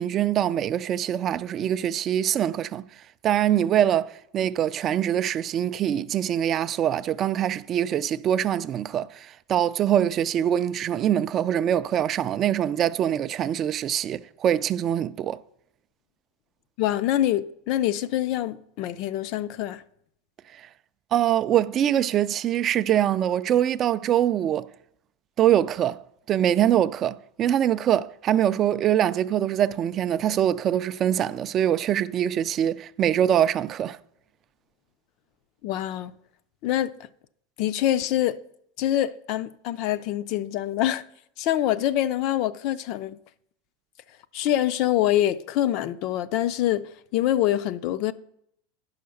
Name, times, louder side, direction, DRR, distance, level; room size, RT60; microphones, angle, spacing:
voice 1, 0.0-2.8 3.2-15.4 20.5-20.7 21.1-24.7 25.4-26.0 26.3-34.0, right 10 dB, 30° right, 0.3 m, -23 dB
voice 2, 16.8-19.8 35.6-36.1 36.6-36.9 37.6-38.4 38.8-41.0 41.4-43.2 44.3-48.1, left 12 dB, 50° left, 0.5 m, -25 dB
10.5 x 5.7 x 6.4 m
supercardioid pair, 140°, 0 cm